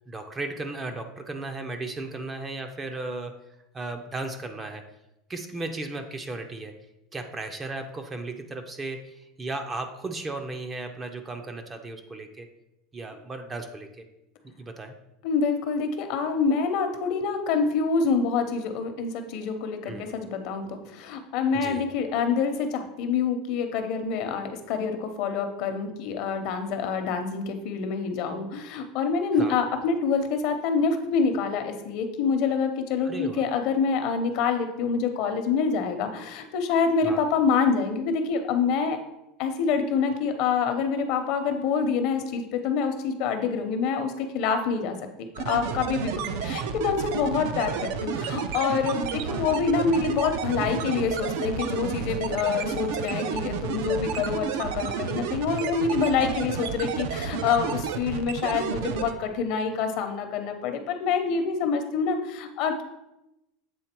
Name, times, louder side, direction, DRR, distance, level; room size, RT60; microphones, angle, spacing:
voice 1, 0.1-3.3 3.7-4.9 5.3-6.8 7.1-12.5 12.9-14.0 14.6-14.9 19.9-20.1 21.5-21.9 29.4-29.6 33.0-33.5 37.0-37.2 49.2-49.5, right 2 dB, 15° right, 6 dB, 0.4 m, -35 dB
voice 2, 15.2-39.0 39.4-62.8, left 5 dB, 55° left, 7 dB, 0.8 m, -26 dB
sound 1, 45.4-59.1, right 6 dB, 70° right, 0.5 m, -31 dB
7.8 x 3.7 x 4.4 m, 0.90 s
supercardioid pair, 160°, 0 cm